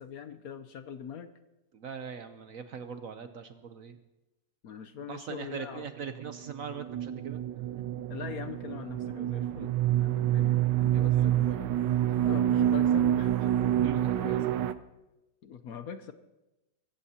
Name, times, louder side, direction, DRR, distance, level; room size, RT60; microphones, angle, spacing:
voice 1, 0.0-1.3 4.6-5.9 8.1-11.7 12.1-13.5 14.1-14.4 15.4-16.1, left 8 dB, 65° left, 10 dB, 1.1 m, -42 dB
voice 2, 1.7-4.0 5.1-7.4 10.9-11.3 13.8-14.5, right 6 dB, 60° right, 9 dB, 1.0 m, -41 dB
sound 1, 6.2-14.7, right 11 dB, 80° right, 1.3 m, -27 dB
23.0 x 15.0 x 2.9 m, 0.99 s
omnidirectional pair, 1.9 m